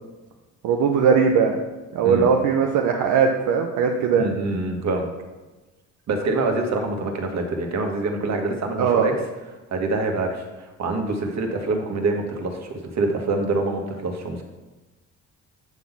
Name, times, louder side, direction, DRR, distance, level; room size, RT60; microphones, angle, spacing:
voice 1, 0.6-1.6 1.9-4.3 8.8-9.1, right 6 dB, 80° right, 2 dB, 0.9 m, -19 dB
voice 2, 4.2-5.1 6.1-9.1 9.7-14.4, right 3 dB, 60° right, 3 dB, 1.7 m, -25 dB
8.9 x 4.0 x 7.2 m, 1.2 s
cardioid pair, 90°, 30 cm